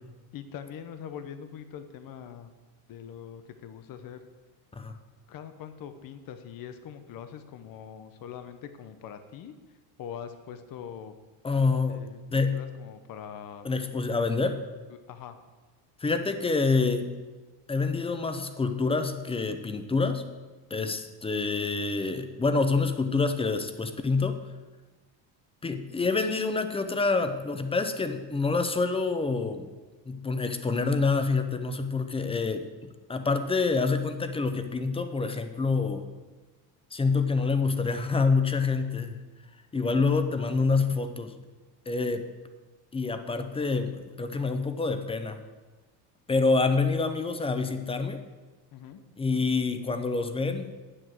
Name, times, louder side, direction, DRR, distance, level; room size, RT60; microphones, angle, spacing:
voice 1, 0.3-2.5 2.9-4.2 5.3-9.5 10.0-11.1 11.9-13.7 14.9-15.4 20.7-21.0 48.7-49.0, left 8 dB, 45° left, 9 dB, 1.0 m, -43 dB
voice 2, 11.4-12.0 12.3-12.6 13.6-14.6 16.0-17.1 17.7-20.2 20.7-24.4 25.6-29.7 30.1-32.7 33.1-36.1 36.9-39.1 39.7-41.4 41.9-42.3 42.9-45.4 46.3-48.2 49.2-50.7, left 4 dB, 10° left, 9 dB, 0.7 m, -27 dB
8.6 x 7.9 x 7.8 m, 1.3 s
cardioid pair, 140°, 47 cm